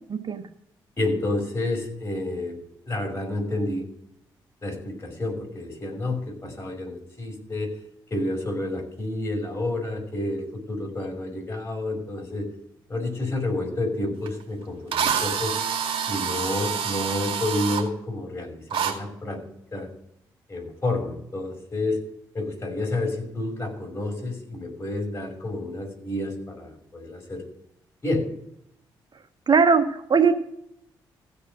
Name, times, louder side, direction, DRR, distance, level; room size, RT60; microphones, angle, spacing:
voice 1, 0.1-0.4 29.5-30.4, right 5 dB, 45° right, 7 dB, 1.5 m, -19 dB
voice 2, 1.0-2.6 2.8-3.9 4.6-7.7 8.1-12.5 12.9-15.5 16.1-19.4 19.7-19.9 20.5-22.0 22.3-27.4 28.0-28.3, left 2 dB, 25° left, 0 dB, 5.8 m, -29 dB
Drill, 14.3-14.4 14.9-17.8 18.7-18.9, right 7 dB, 65° right, 2.1 m, -27 dB
15.5 x 5.3 x 7.5 m, 0.74 s
supercardioid pair, 50°, 10 cm